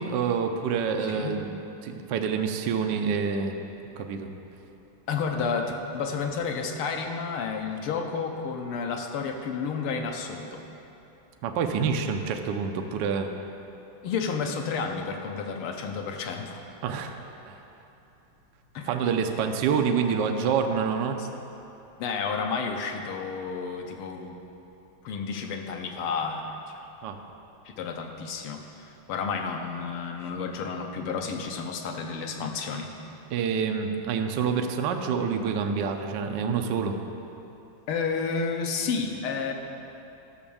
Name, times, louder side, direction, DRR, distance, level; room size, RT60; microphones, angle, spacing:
voice 1, 0.0-3.6 4.0-4.3 11.4-13.3 16.8-17.1 17.5-17.6 18.9-21.2 27.0-27.2 33.3-37.0, right 6 dB, 65° right, 4 dB, 1.2 m, -27 dB
voice 2, 1.0-1.4 5.1-10.6 14.0-16.6 18.7-18.9 21.2-21.3 22.0-24.4 25.0-26.6 27.7-32.9 37.9-39.5, left 5 dB, 85° left, 3 dB, 1.8 m, -31 dB
12.5 x 6.1 x 7.1 m, 2.9 s
omnidirectional pair, 2.4 m